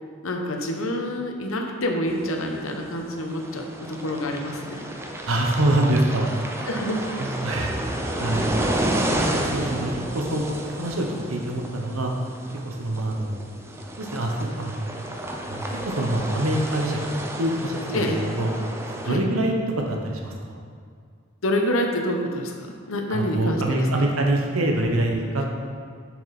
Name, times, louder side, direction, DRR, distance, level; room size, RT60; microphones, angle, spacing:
voice 1, 0.2-4.8 6.7-7.0 7.3-7.4 17.9-18.2 19.0-19.2 21.4-24.1, left 1 dB, 80° left, 3 dB, 0.9 m, -27 dB
sound 1, 2.1-19.1, right 1 dB, 10° right, 0.5 m, -31 dB
voice 2, 5.2-6.7 7.2-8.6 9.1-12.1 12.6-13.4 14.0-14.8 15.5-18.5 19.0-20.6 23.1-25.5, right 1 dB, 90° right, 1 dB, 1.0 m, -25 dB
7.2 x 6.1 x 4.1 m, 2.1 s
head